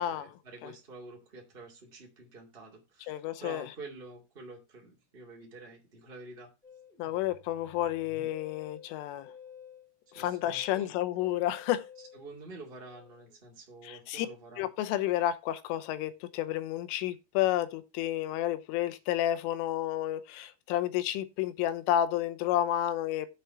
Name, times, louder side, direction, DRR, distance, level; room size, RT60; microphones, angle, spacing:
voice 1, 0.0-6.5 10.1-10.9 12.1-14.7, right 3 dB, 75° right, 0.5 m, -48 dB
voice 2, 3.1-3.7 7.0-9.3 10.1-11.9 13.8-14.3 14.6-23.3, left 12 dB, 80° left, 3.3 m, -31 dB
Musical instrument, 6.6-13.4, left 7 dB, ahead, 1.3 m, -52 dB
7.9 x 6.8 x 5.8 m
omnidirectional pair, 5.8 m